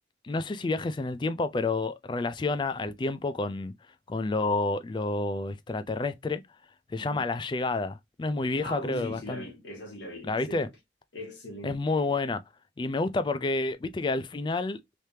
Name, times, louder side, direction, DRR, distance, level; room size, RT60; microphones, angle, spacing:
voice 1, 0.2-3.7 4.1-6.4 6.9-9.4 10.3-10.7 11.6-12.4 12.8-15.0, left 3 dB, 25° left, 0.3 m, -29 dB
voice 2, 8.6-10.7 11.1-12.2, left 1 dB, 70° left, 1.2 m, -40 dB
3.3 x 3.1 x 2.7 m
head